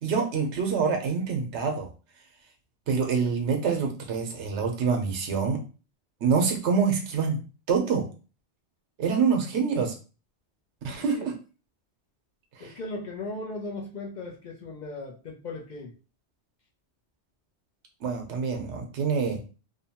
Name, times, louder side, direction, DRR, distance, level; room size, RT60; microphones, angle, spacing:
voice 1, 0.0-1.9 2.9-5.6 6.2-7.4 7.7-8.1 9.0-9.9 10.8-11.3 12.6-12.7 18.0-19.4, right 5 dB, 80° right, 0.9 m, -26 dB
voice 2, 11.0-11.3 12.6-15.9, left 2 dB, 55° left, 0.5 m, -37 dB
2.7 x 2.2 x 2.7 m
omnidirectional pair, 1.2 m